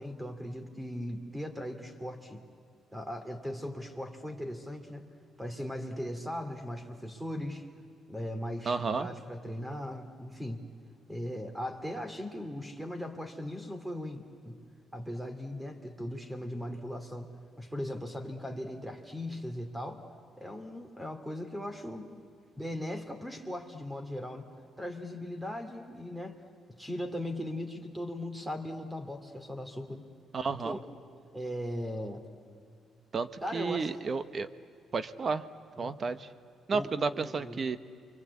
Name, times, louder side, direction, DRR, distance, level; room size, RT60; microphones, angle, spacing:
voice 1, 0.0-2.4 2.9-5.1 5.4-7.7 8.1-10.6 11.1-14.6 14.9-17.3 17.6-20.0 20.4-22.1 22.6-24.5 24.8-26.4 26.8-30.1 30.6-30.9 31.3-32.3 33.4-33.9 35.2-35.4 35.8-36.0 36.7-37.6, left 1 dB, 10° right, 6 dB, 2.9 m, -38 dB
voice 2, 8.7-9.1 30.3-30.8 33.1-34.5 34.9-35.4 35.8-36.3 36.7-37.8, right 4 dB, 45° right, 12 dB, 1.1 m, -32 dB
29.0 x 24.0 x 8.5 m, 2.1 s
cardioid pair, 90°, 0 cm